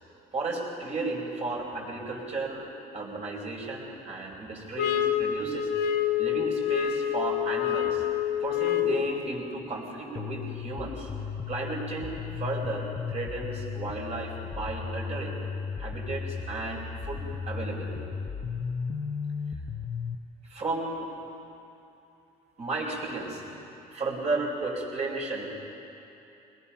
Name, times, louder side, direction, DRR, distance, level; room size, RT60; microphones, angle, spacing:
voice 1, 0.3-5.7 6.2-8.0 8.4-15.4 15.8-18.0 20.4-21.1 22.6-23.6 23.9-25.5, right 3 dB, 40° right, -1 dB, 4.8 m, -34 dB
sound 1, 4.8-9.1, left 10 dB, 75° left, 1.1 m, -27 dB
sound 2, 10.2-20.2, left 6 dB, 35° left, 0.9 m, -35 dB
23.0 x 19.5 x 5.8 m, 2.8 s
cardioid pair, 110°, 17 cm